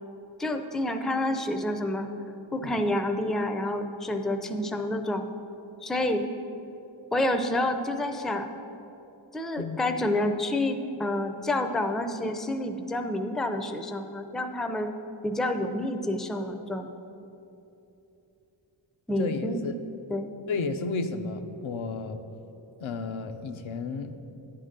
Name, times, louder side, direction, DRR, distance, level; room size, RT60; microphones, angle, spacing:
voice 1, 0.4-2.1 2.5-5.3 5.8-6.2 7.1-8.5 9.3-14.9 15.2-16.9 19.1-19.6 20.1-20.3, left 1 dB, ahead, 6 dB, 0.4 m, -28 dB
voice 2, 19.2-19.7 20.5-22.2 22.8-24.1, left 4 dB, 85° left, 7 dB, 0.6 m, -32 dB
9.3 x 3.8 x 6.5 m, 2.9 s
wide cardioid pair, 65°, 47 cm